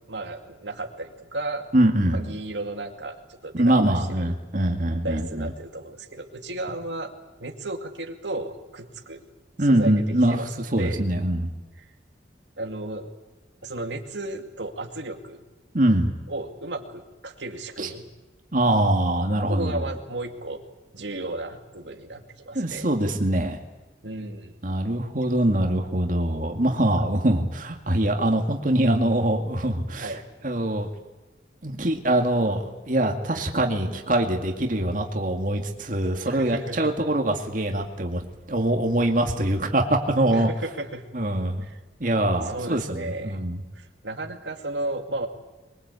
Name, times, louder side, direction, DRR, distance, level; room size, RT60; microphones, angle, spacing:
voice 1, 0.1-1.7 2.1-4.3 5.0-7.1 7.4-9.2 9.6-11.0 11.8-11.9 12.6-13.1 13.6-15.4 16.3-18.1 19.5-20.6 20.9-22.9 24.0-24.6 30.0-30.3 36.2-36.9 40.3-41.0 41.6-41.8 42.4-43.4 43.7-45.3, right 2 dB, 80° right, 4 dB, 2.3 m, -34 dB
voice 2, 1.7-2.2 3.5-5.5 9.6-10.4 10.7-11.5 15.7-16.1 17.8-17.9 18.5-19.8 22.6-23.6 24.6-30.2 30.4-30.9 31.6-40.5 41.1-41.6 42.0-43.6, right 1 dB, 45° right, 2 dB, 2.2 m, -23 dB
23.5 x 22.5 x 8.4 m, 1.1 s
head